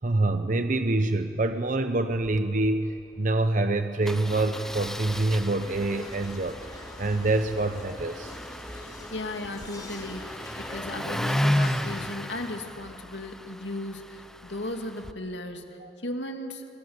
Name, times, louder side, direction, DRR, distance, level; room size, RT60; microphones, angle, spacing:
voice 1, 0.0-8.3 15.8-15.9, right 2 dB, 45° right, 8 dB, 0.8 m, -26 dB
Engine starting, 2.1-2.4 2.6-2.7 3.0-3.2 4.1-15.1, equal, 5° left, 0.7 m, -34 dB
sound 1, 4.0-12.1, left 1 dB, 20° left, 2.7 m, -44 dB
voice 2, 8.7-16.7, left 1 dB, 75° left, 4 dB, 2.4 m, -36 dB
23.5 x 21.5 x 9.6 m, 2.6 s
head